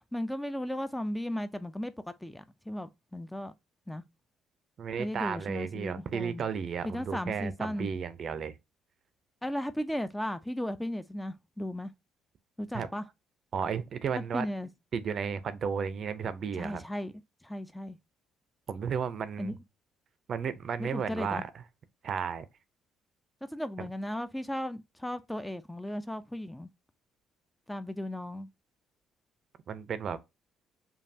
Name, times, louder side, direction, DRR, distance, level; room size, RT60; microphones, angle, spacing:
voice 1, 0.1-1.9 2.2-3.5 3.9-4.0 5.0-6.4 6.8-7.9 9.4-11.9 12.6-13.0 14.1-14.7 16.6-17.1 17.4-18.0 19.4-19.5 20.8-21.4 23.4-26.7 27.7-28.5, left 1 dB, 5° left, 0.3 m, -36 dB
voice 2, 4.8-8.5 12.7-12.9 13.5-14.5 14.9-16.8 18.7-19.6 20.3-21.5 22.0-22.5 29.7-30.2, right 6 dB, 50° right, 0.5 m, -33 dB
5.3 x 2.3 x 2.6 m
cardioid pair, 105°, 0 cm